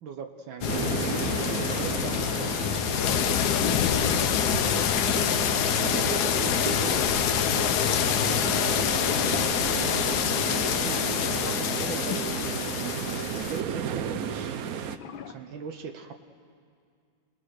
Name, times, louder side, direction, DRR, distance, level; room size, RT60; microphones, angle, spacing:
voice 1, 0.0-1.2 1.6-3.6 4.0-5.0 5.8-8.8 9.7-10.2 10.8-11.0 11.3-13.1 13.4-14.6 15.3-16.1, right 6 dB, 80° right, 5 dB, 1.7 m, -40 dB
sound 1, 0.6-13.6, left 9 dB, 65° left, 1.2 m, -26 dB
sound 2, 0.7-15.0, right 8 dB, 60° right, 1.0 m, -33 dB
sound 3, 8.9-10.3 10.6-10.7 11.9-13.2 14.9-15.4, left 8 dB, 85° left, 1.7 m, -39 dB
voice 2, 9.2-10.4, right 3 dB, 35° right, 3 dB, 1.9 m, -47 dB
29.5 x 20.0 x 6.5 m, 2.2 s
omnidirectional pair, 2.1 m